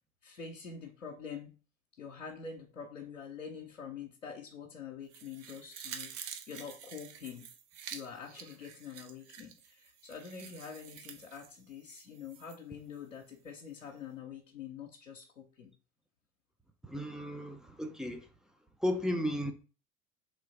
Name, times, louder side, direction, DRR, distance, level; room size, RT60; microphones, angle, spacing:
voice 1, 0.2-1.6 2.0-6.1 6.5-7.5 7.9-15.7, left 6 dB, 85° left, 0.7 m, -46 dB
sound 1, 5.1-12.6 12.9-13.0, right 8 dB, 40° right, 0.7 m, -48 dB
voice 2, 16.8-18.3 18.8-19.5, left 1 dB, ahead, 0.4 m, -34 dB
3.3 x 3.1 x 4.0 m
figure-of-eight pair, 70°, 39 cm